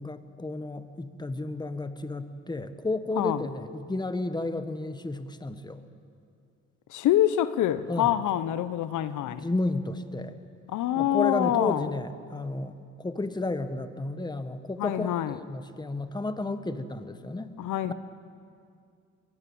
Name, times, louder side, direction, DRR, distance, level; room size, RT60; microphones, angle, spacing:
voice 1, 0.0-5.8 7.9-8.2 9.2-10.4 10.9-17.5, left 2 dB, 15° left, 10 dB, 1.3 m, -32 dB
voice 2, 6.9-9.4 10.7-11.9 14.8-15.4 17.6-17.9, left 12 dB, 80° left, 13 dB, 0.8 m, -26 dB
21.5 x 17.5 x 8.6 m, 2.3 s
cardioid pair, 90°, 30 cm